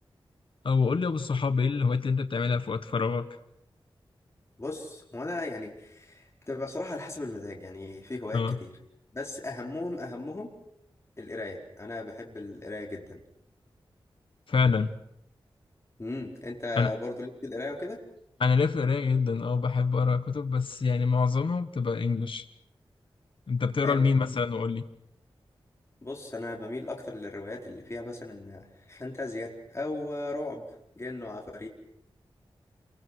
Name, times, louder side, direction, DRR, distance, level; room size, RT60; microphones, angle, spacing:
voice 1, 0.6-3.3 8.3-8.6 14.5-14.9 16.7-16.9 18.4-22.4 23.5-24.8, left 5 dB, 65° left, 8 dB, 1.3 m, -26 dB
voice 2, 4.6-8.7 9.1-10.5 11.2-13.2 16.0-18.0 23.8-24.1 26.0-30.6 31.0-31.7, left 2 dB, 30° left, 0 dB, 4.5 m, -37 dB
28.5 x 23.0 x 6.3 m, 0.75 s
wide cardioid pair, 85°, 9 cm